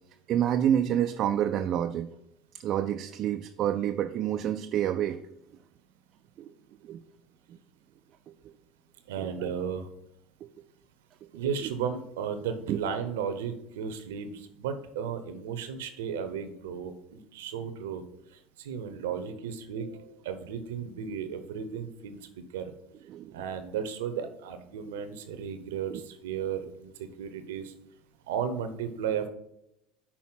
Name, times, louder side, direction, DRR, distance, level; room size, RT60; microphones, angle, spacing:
voice 1, 0.3-2.1 2.5-5.2 6.4-6.5 6.8-7.0 7.5-7.6 8.3-8.5 9.2-9.5 10.4-10.5 11.2-11.3 11.6-11.7 12.7-12.8 23.1-23.4 25.9-26.0, right 10 dB, 55° right, 7 dB, 0.4 m, -28 dB
voice 2, 9.1-9.9 11.3-18.0 18.6-22.2 22.5-22.6 23.3-27.7 28.3-29.3, right 7 dB, 80° right, 9 dB, 0.8 m, -34 dB
6.0 x 4.2 x 5.6 m, 0.81 s
hypercardioid pair, 80°, 0 cm